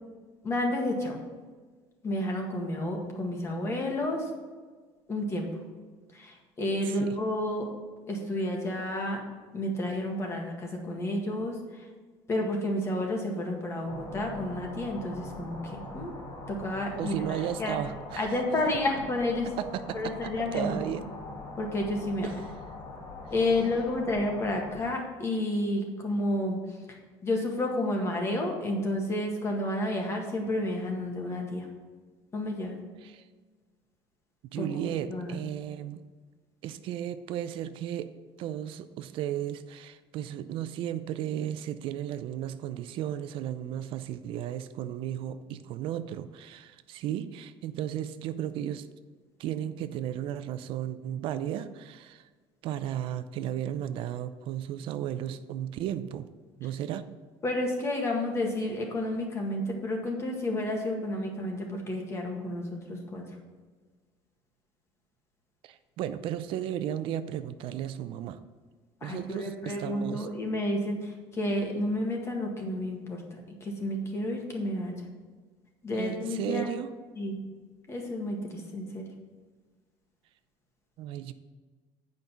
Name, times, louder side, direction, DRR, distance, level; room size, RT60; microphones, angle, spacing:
voice 1, 0.4-1.2 2.0-4.3 5.1-5.5 6.1-7.7 8.1-9.2 9.5-11.9 12.3-16.1 16.5-17.8 18.2-19.5 19.9-20.8 21.6-22.3 23.3-26.8 27.2-31.7 32.3-32.8 34.6-35.3 57.4-63.2 69.0-75.0 75.8-76.7 77.2-77.4 77.9-79.0, left 1 dB, 30° left, 1 dB, 1.7 m, -31 dB
voice 2, 6.8-7.1 17.0-18.3 19.6-19.7 20.0-21.0 22.2-22.3 33.0-33.2 34.5-36.0 36.6-38.1 38.4-48.9 49.4-52.3 52.6-56.3 56.6-57.1 65.6-68.4 69.0-70.3 75.9-76.9 81.0-81.3, right 11 dB, 65° right, 12 dB, 0.5 m, -34 dB
sound 1, 13.9-24.8, left 2 dB, 45° left, 2.8 m, -42 dB
8.5 x 5.3 x 5.7 m, 1.4 s
cardioid pair, 135°, 10 cm